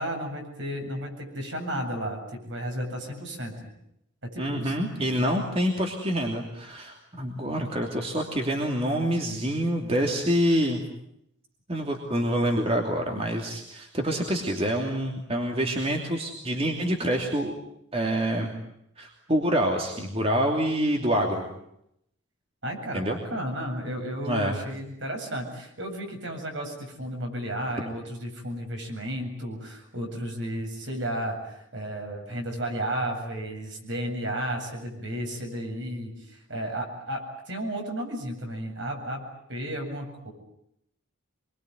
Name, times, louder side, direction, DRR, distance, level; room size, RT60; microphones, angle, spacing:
voice 1, 0.0-3.5 4.2-4.8 22.6-40.3, right 1 dB, 60° right, 3 dB, 7.8 m, -33 dB
voice 2, 4.4-10.8 11.7-17.5 17.9-18.5 19.0-21.5 22.9-23.2 24.3-24.6, equal, 30° right, 2 dB, 2.9 m, -26 dB
26.5 x 23.0 x 9.5 m, 0.77 s
head